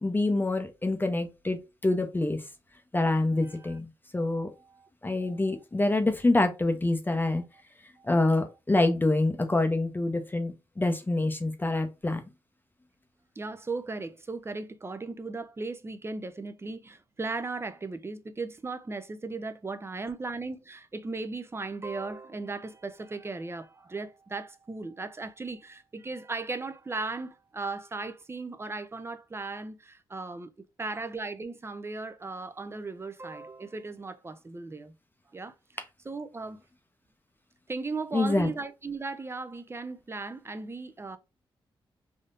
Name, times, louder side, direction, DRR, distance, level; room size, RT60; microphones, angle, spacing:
voice 1, 0.0-2.5 2.9-4.5 5.0-7.4 8.0-12.2 38.1-38.5, left 2 dB, 20° left, 0.7 m, -26 dB
voice 2, 13.4-30.5 30.8-34.9 35.3-35.5 36.1-36.6 37.7-41.2, right 3 dB, 25° right, 0.6 m, -37 dB
3.5 x 2.7 x 2.5 m
cardioid pair, 70°, 10 cm